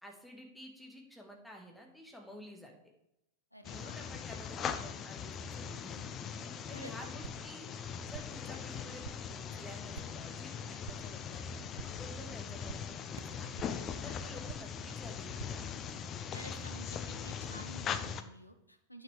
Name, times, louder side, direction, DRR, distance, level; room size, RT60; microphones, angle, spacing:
voice 1, 0.0-2.7 3.7-6.0 6.4-7.7 8.1-13.5 14.0-15.9, equal, ahead, 0 dB, 1.7 m, -51 dB
voice 2, 3.5-4.0 6.7-6.9 16.3-17.0 17.2-19.0, equal, 85° left, 7 dB, 0.8 m, -51 dB
sound 1, 3.6-18.2, left 7 dB, 30° left, 0.6 m, -40 dB
sound 2, 7.1-7.6 7.8-8.5 8.8-9.4 9.7-10.3 10.6-11.2 11.5-12.1 12.4-13.9 14.2-14.8 15.1-15.9, right 7 dB, 65° right, 0.5 m, -50 dB
9.3 x 6.5 x 3.4 m, 0.84 s
figure-of-eight pair, 90°, 0 cm